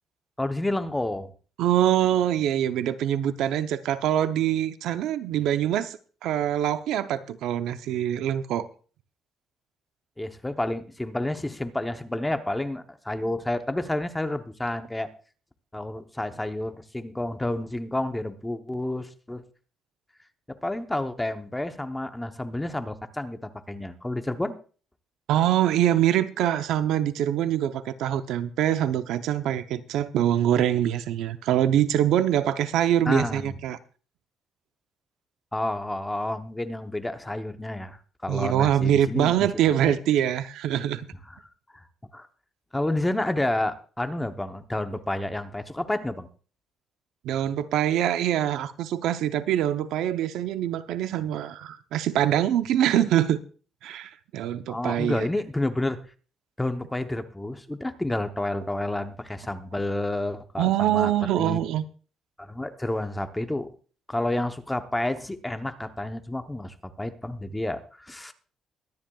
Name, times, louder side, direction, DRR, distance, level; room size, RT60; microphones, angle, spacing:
voice 1, 0.4-1.3 10.2-15.1 15.7-19.4 20.6-24.5 33.1-33.5 35.5-39.5 39.8-39.9 41.3-41.4 41.7-41.8 42.1-42.3 42.7-46.3 54.7-56.0 56.6-61.1 61.4-61.7 62.4-63.7 64.1-68.3, left 1 dB, 5° left, 0.8 m, -30 dB
voice 2, 1.6-8.7 25.3-33.8 38.3-41.0 47.2-53.4 53.8-55.3 60.6-61.8, right 11 dB, 85° right, 0.7 m, -24 dB
22.5 x 10.5 x 2.3 m
cardioid pair, 160°, 0 cm